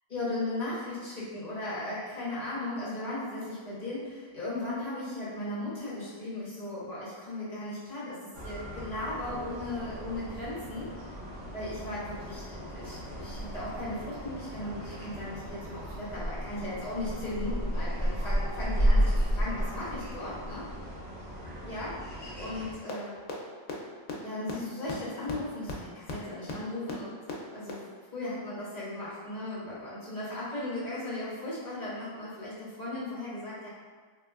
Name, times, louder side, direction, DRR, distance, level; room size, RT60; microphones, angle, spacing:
voice 1, 0.1-10.9 11.5-20.6 21.6-23.2 24.2-27.2 27.5-27.8 28.1-33.7, left 2 dB, 35° left, -9 dB, 0.9 m, -37 dB
sound 1, 8.3-22.7, equal, 10° left, 0.8 m, -33 dB
sound 2, 22.9-23.0 23.3-23.4 23.7-23.8 24.1-24.2 24.5-24.6 24.9-25.0 25.3-25.4 25.7-25.8 26.1-26.2 26.5-26.6 26.9-27.0 27.3-27.4 27.7-27.8, left 5 dB, 90° left, 1.1 m, -35 dB
3.3 x 2.9 x 2.3 m, 1.5 s
omnidirectional pair, 1.4 m